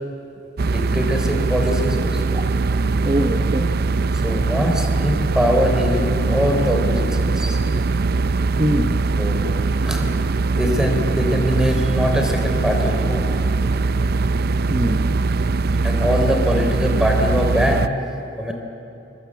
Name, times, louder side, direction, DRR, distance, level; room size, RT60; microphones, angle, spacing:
sound 1, 0.6-17.9, right 3 dB, 55° right, 0.5 m, -21 dB
voice 1, 0.7-2.4 4.1-7.6 9.2-10.1 10.6-13.2 15.8-17.9 18.4-18.5, equal, 5° right, 2 dB, 3.5 m, -22 dB
voice 2, 3.0-3.8 8.6-9.0 14.7-15.1, equal, 25° right, 4 dB, 1.0 m, -23 dB
23.5 x 23.0 x 8.6 m, 3.0 s
head